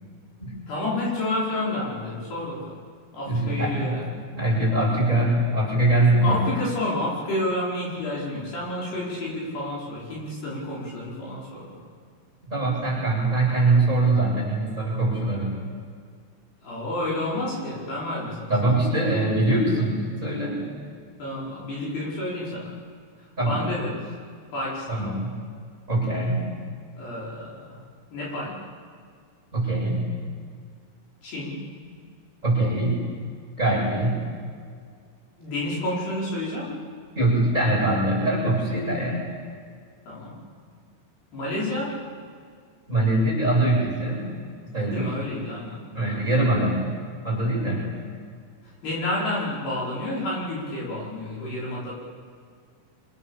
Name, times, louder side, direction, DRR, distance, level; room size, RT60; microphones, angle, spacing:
voice 1, 0.7-2.8 3.1-4.2 6.2-11.8 16.6-18.5 21.2-22.7 23.4-24.0 24.5-25.1 27.0-27.8 28.1-28.6 31.2-31.7 35.4-36.8 40.1-40.4 41.3-42.0 44.8-46.1 48.8-52.0, left 1 dB, 55° left, -6 dB, 6.8 m, -30 dB
voice 2, 3.2-4.0 4.3-6.4 12.5-15.6 18.5-20.8 23.4-23.6 24.9-25.3 25.9-26.5 29.5-30.1 32.4-33.0 33.6-34.2 37.1-39.3 42.9-44.3 44.7-45.1 45.9-46.8 47.2-47.9, right 2 dB, 15° right, -4 dB, 7.6 m, -23 dB
29.0 x 26.0 x 7.3 m, 2.1 s
omnidirectional pair, 5.8 m